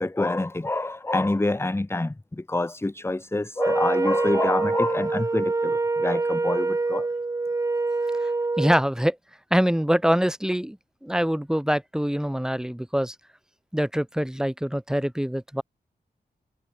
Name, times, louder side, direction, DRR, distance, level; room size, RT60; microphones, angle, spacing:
voice 1, 0.0-7.1, left 2 dB, 15° left, 1.1 m, -26 dB
Wind instrument woodwind instrument, 3.6-8.8, right 3 dB, 20° right, 0.4 m, -25 dB
voice 2, 8.6-9.2 9.5-10.8 11.0-13.1 13.7-15.6, equal, 5° right, 2.9 m, -24 dB
wide cardioid pair, 95°, 17 cm